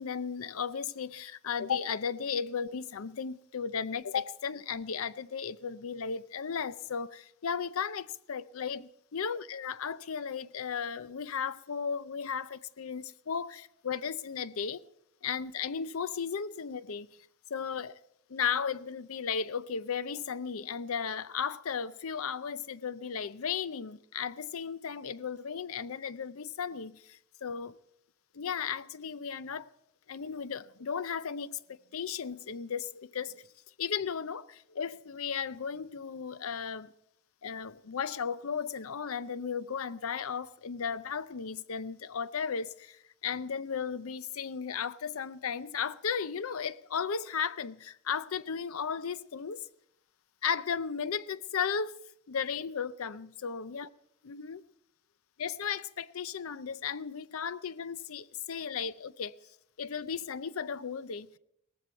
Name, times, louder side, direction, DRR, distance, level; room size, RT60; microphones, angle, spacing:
voice 1, 0.0-14.8 15.2-17.1 17.5-18.0 18.3-27.8 28.3-29.7 30.1-33.4 33.8-36.9 37.4-49.7 50.4-51.9 52.3-53.9 54.3-54.6 55.4-59.4 59.8-61.4, left 6 dB, 80° left, 0.6 m, -35 dB
18.0 x 14.5 x 4.5 m
head